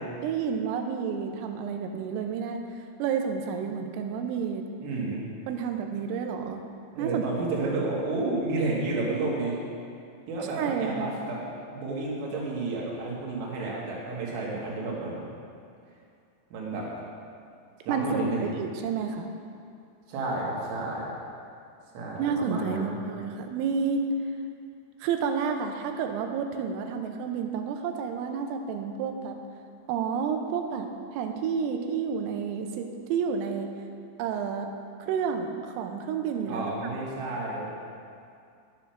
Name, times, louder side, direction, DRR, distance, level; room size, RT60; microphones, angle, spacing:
voice 1, 0.0-2.6 3.0-4.6 5.5-6.6 7.0-7.2 10.6-11.2 17.9-19.3 22.2-24.1 25.0-29.4 29.9-33.7 34.2-34.7 35.0-36.7, right 6 dB, 90° right, 4 dB, 3.4 m, -30 dB
voice 2, 4.8-5.2 6.9-9.6 10.3-11.4 11.7-15.2 16.5-16.9 17.8-18.5 20.1-21.1 21.9-23.0 36.5-37.7, right 2 dB, 65° right, -4 dB, 3.7 m, -31 dB
10.0 x 7.6 x 5.8 m, 2.4 s
omnidirectional pair, 5.7 m